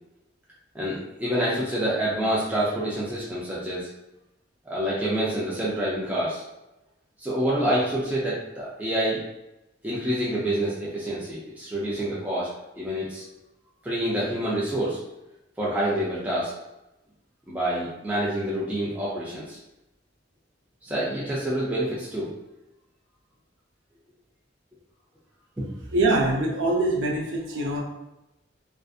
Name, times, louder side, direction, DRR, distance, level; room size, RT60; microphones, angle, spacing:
voice 1, 0.7-3.9 4.7-6.4 7.2-9.2 9.8-12.5 12.8-13.2 13.8-15.0 15.6-16.5 17.5-19.6 20.8-22.3 25.6-25.7, right 1 dB, 10° right, -8 dB, 0.4 m, -27 dB
voice 2, 25.9-27.8, right 2 dB, 85° right, 0 dB, 0.6 m, -23 dB
2.4 x 2.4 x 2.4 m, 0.95 s
head